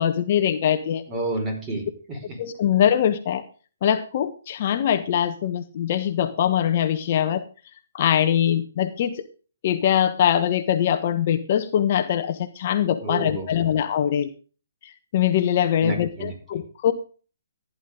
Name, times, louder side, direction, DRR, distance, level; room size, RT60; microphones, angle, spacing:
voice 1, 0.0-1.0 2.4-3.4 3.8-7.4 7.9-9.1 9.6-14.3 15.1-16.9, left 10 dB, 45° left, 9 dB, 1.2 m, -22 dB
voice 2, 1.1-2.4 13.0-13.7 15.8-16.3, right 2 dB, 20° right, 3 dB, 5.4 m, -30 dB
15.5 x 10.5 x 3.9 m, 0.37 s
figure-of-eight pair, 135°, 0 cm